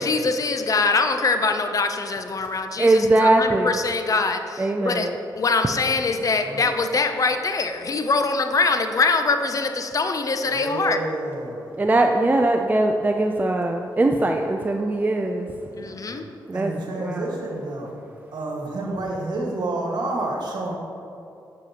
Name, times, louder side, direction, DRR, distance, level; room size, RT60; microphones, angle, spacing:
voice 1, 0.0-5.1 5.4-11.0 15.8-16.3, left 4 dB, 45° left, 7 dB, 0.5 m, -23 dB
voice 2, 2.8-3.8 4.6-5.2 11.8-15.5 16.5-16.7 17.0-17.4, right 2 dB, 20° right, 3 dB, 0.4 m, -21 dB
voice 3, 10.4-11.7 15.7-16.2 16.5-17.9 18.3-20.8, right 2 dB, 65° right, -1 dB, 1.5 m, -29 dB
9.1 x 6.5 x 2.9 m, 2.7 s
cardioid pair, 70°, 8 cm